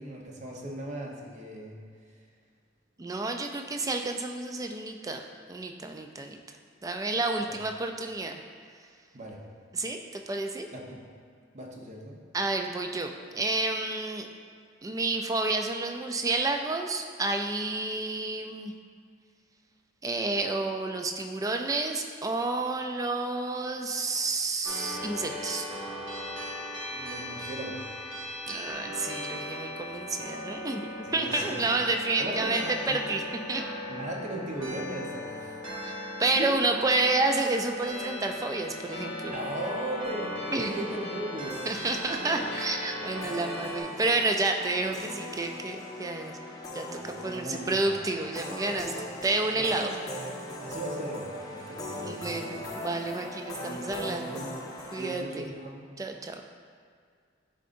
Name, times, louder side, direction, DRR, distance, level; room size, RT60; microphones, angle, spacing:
voice 1, 0.0-1.8 7.4-7.6 9.1-9.4 10.7-11.0 11.5-12.2 26.9-27.8 31.0-31.8 32.2-33.2 33.9-35.5 36.3-36.5 39.3-41.6 46.9-47.7 49.6-50.0 50.6-52.6 53.6-54.5 55.0-55.8, right 1 dB, 40° right, -2 dB, 0.8 m, -38 dB
voice 2, 3.0-5.2 5.5-6.4 6.8-8.3 9.7-10.7 12.3-14.3 14.8-18.7 20.0-25.7 28.5-33.2 33.5-33.6 35.8-35.9 36.2-39.3 40.5-40.8 41.7-46.4 46.7-48.9 49.2-49.9 52.0-54.4 54.9-55.5 56.0-56.4, right 2 dB, 20° right, 4 dB, 0.3 m, -30 dB
sound 1, 24.6-43.8, left 1 dB, 85° right, 1.4 m, -38 dB
sound 2, 41.5-55.2, left 1 dB, 20° left, 0.7 m, -40 dB
10.0 x 3.8 x 2.6 m, 2.1 s
head